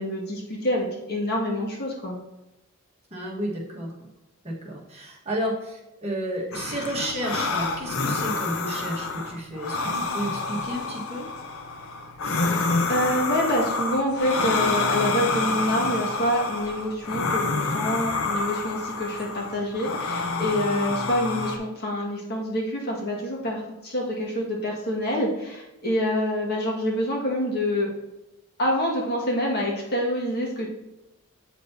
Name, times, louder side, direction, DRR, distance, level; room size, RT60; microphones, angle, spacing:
voice 1, 0.0-2.2 12.4-12.6 12.9-27.9 28.6-30.7, equal, 45° left, -3 dB, 1.8 m, -26 dB
voice 2, 3.1-4.1 4.4-11.3, equal, 30° right, -4 dB, 1.5 m, -32 dB
sound 1, 6.5-21.6, left 3 dB, 65° left, 0.7 m, -28 dB
sound 2, 6.9-16.6, right 4 dB, 15° left, 2.5 m, -51 dB
8.1 x 6.4 x 2.8 m, 0.97 s
head